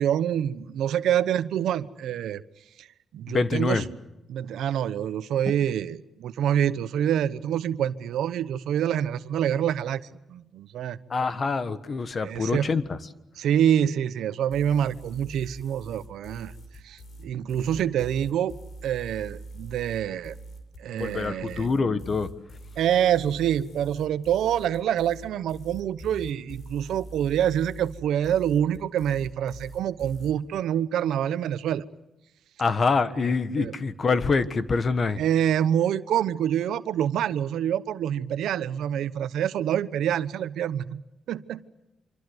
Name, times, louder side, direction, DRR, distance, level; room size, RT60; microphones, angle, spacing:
voice 1, 0.0-2.4 2.8-2.9 3.1-3.8 4.3-10.0 10.3-11.0 12.2-12.7 13.4-16.5 16.8-18.5 18.8-20.3 20.8-21.7 22.8-31.8 33.6-33.7 35.2-41.0 41.3-41.6, right 10 dB, 85° right, 14 dB, 1.0 m, -26 dB
voice 2, 3.3-3.9 11.1-13.0 20.9-22.3 32.6-35.2, left 4 dB, 40° left, 13 dB, 1.5 m, -25 dB
sound 1, 14.5-30.3, right 1 dB, 55° left, 6.2 m, -43 dB
26.5 x 25.5 x 8.0 m, 0.90 s
cardioid pair, 105°, 0 cm